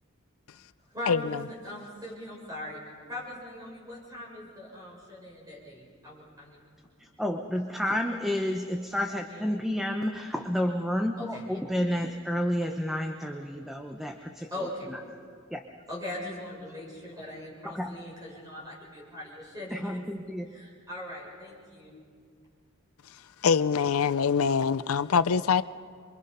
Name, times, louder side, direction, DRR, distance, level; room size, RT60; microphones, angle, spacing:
voice 1, 0.9-2.8 3.1-6.6 9.3-9.6 11.2-11.6 14.5-14.9 15.3-15.4 15.9-20.0 20.5-22.0, left 1 dB, 15° right, 6.7 m, -40 dB
voice 2, 7.2-14.1 15.5-15.6 17.8-17.9 19.8-20.4, equal, ahead, 0.8 m, -30 dB
voice 3, 23.4-25.6, left 6 dB, 90° left, 0.5 m, -24 dB
27.5 x 23.5 x 5.5 m
head